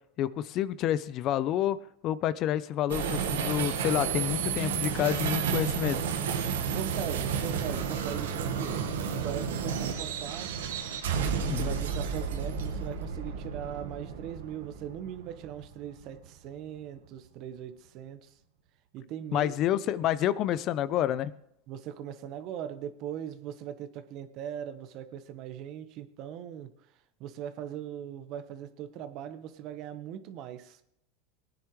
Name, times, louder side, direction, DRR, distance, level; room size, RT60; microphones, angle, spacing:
voice 1, 0.2-1.8 2.0-6.0 11.5-11.7 19.3-21.3, left 11 dB, 45° left, 16 dB, 0.6 m, -28 dB
sound 1, 2.9-16.3, right 7 dB, 90° right, 1.6 m, -32 dB
voice 2, 6.7-10.5 11.4-18.3 18.9-19.5 21.7-26.7 27.2-30.8, right 10 dB, 50° right, 10 dB, 1.2 m, -40 dB
18.5 x 9.9 x 3.2 m, 0.75 s
supercardioid pair, 115°, 0 cm